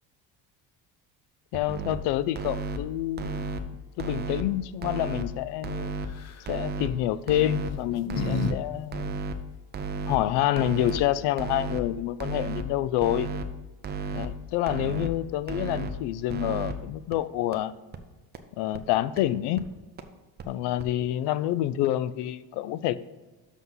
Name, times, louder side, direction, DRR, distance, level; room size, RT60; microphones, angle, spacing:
voice 1, 1.5-6.0 6.5-9.2 10.1-13.3 14.1-17.7 18.6-19.6 20.5-23.0, left 13 dB, 80° left, 0.5 m, -28 dB
sound 1, 1.5-2.0 2.4-2.8 3.2-3.6 4.0-4.4 4.8-5.2 5.6-6.1 6.5-6.9 7.3-7.7 8.1-8.5 8.9-9.3 9.7-10.2 10.6-11.0 11.4-11.8 12.2-12.6 13.0-13.5 13.8-14.3 14.7-15.1 15.5-15.9 16.3-16.7 17.1-17.2 17.5-17.6 17.9-18.0 18.4-18.5 18.7-18.8 19.2-19.3 19.6-19.7 20.0-20.1 20.4-20.5 20.8-20.9, right 4 dB, 25° right, 0.5 m, -33 dB
sound 2, 6.1-6.5 7.5-8.5 8.8-8.9 10.6-10.7 10.9-11.3, left 4 dB, 40° left, 0.6 m, -31 dB
6.2 x 5.7 x 5.6 m
cardioid pair, 140°, 40 cm